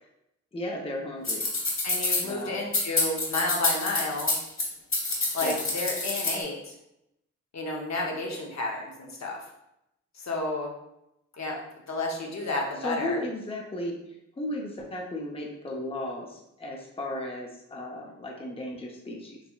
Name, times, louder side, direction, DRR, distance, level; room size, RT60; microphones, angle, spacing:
voice 1, 0.5-1.5 2.2-2.6 5.4-5.6 12.8-19.4, left 1 dB, 20° left, -1 dB, 0.7 m, -35 dB
sound 1, 1.2-2.2 2.7-4.6 4.9-6.4, left 2 dB, 40° left, 1.3 m, -26 dB
voice 2, 1.8-4.4 5.3-6.7 7.5-9.4 10.1-10.7 11.3-11.6 11.9-13.2, left 2 dB, 60° left, -1 dB, 0.8 m, -31 dB
4.0 x 2.8 x 2.3 m, 0.83 s
cardioid pair, 70°, 31 cm